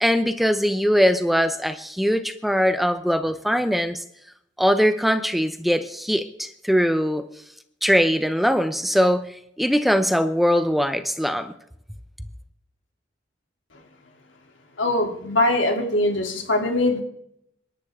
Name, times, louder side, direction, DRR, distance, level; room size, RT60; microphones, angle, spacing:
voice 1, 0.0-4.0 4.6-7.3 7.8-11.5, equal, ahead, 0.7 m, -21 dB
voice 2, 14.8-17.0, left 1 dB, 85° left, 3.0 m, -22 dB
27.5 x 11.5 x 3.7 m
head